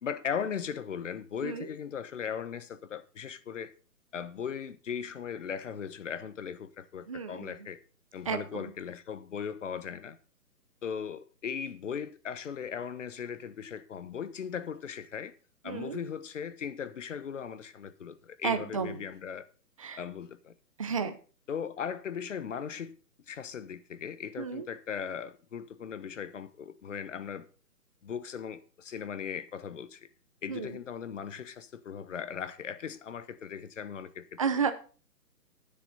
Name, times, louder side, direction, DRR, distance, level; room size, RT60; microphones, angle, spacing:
voice 1, 0.0-3.7 4.1-7.8 8.1-10.2 10.8-15.3 15.6-19.5 19.9-20.5 21.5-23.0 23.3-27.5 28.0-30.1 30.4-34.4, left 7 dB, 50° left, 1.3 m, -38 dB
voice 2, 7.1-7.5 8.3-8.7 15.7-16.0 18.4-19.0 19.8-20.0 20.8-21.1 24.4-24.7 30.5-30.8 34.4-34.7, right 6 dB, 20° right, 0.7 m, -32 dB
11.5 x 10.0 x 4.2 m
hypercardioid pair, 160°, 48 cm